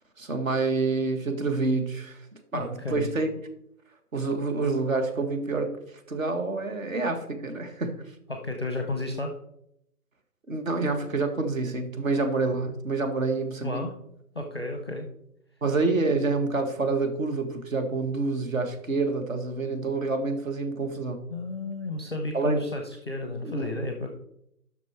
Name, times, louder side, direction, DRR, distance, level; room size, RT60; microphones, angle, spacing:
voice 1, 0.2-3.3 4.1-5.8 6.1-8.0 10.5-13.9 15.6-21.2 22.3-22.6 23.4-23.7, right 3 dB, 55° right, 1.7 m, -27 dB
voice 2, 2.5-3.1 8.3-9.3 13.6-13.9 14.3-15.1 21.3-24.1, left 2 dB, 15° left, 0.7 m, -32 dB
10.5 x 6.3 x 4.5 m
figure-of-eight pair, 160°, 47 cm